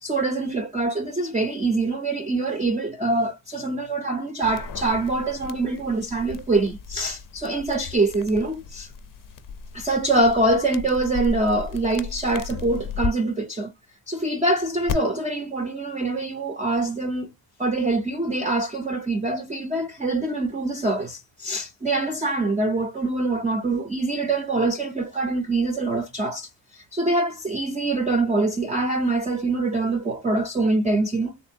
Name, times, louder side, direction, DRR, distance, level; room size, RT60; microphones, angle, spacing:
voice 1, 0.0-8.9 9.7-13.7 14.1-17.3 17.6-31.4, right 2 dB, 15° right, 0.4 m, -24 dB
sound 1, 4.4-13.1 14.9-15.0, left 5 dB, 45° left, 0.5 m, -35 dB
3.5 x 2.5 x 2.6 m
wide cardioid pair, 155°, 49 cm